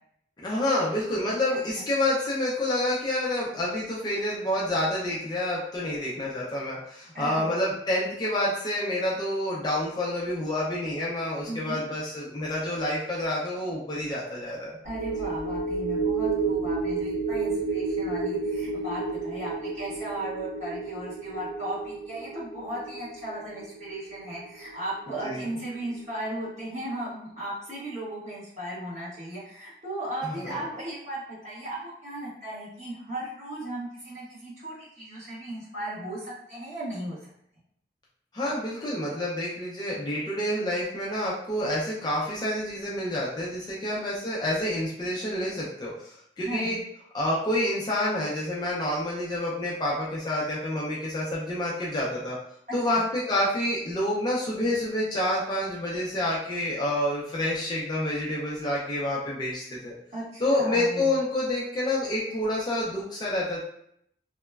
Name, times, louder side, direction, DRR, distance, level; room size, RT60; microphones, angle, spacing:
voice 1, 0.4-14.8 25.2-25.5 30.2-30.6 38.3-46.8 47.1-52.4 52.7-59.9 60.4-63.6, left 1 dB, 25° left, -5 dB, 0.4 m, -28 dB
voice 2, 7.1-7.5 11.5-11.8 14.8-37.3 43.8-44.0 46.4-46.8 52.7-53.0 60.1-61.2, right 1 dB, 40° right, -9 dB, 1.3 m, -36 dB
sound 1, 14.9-25.5 25.8-26.0, right 4 dB, 70° right, 1.0 m, -31 dB
2.9 x 2.1 x 2.3 m, 0.70 s
head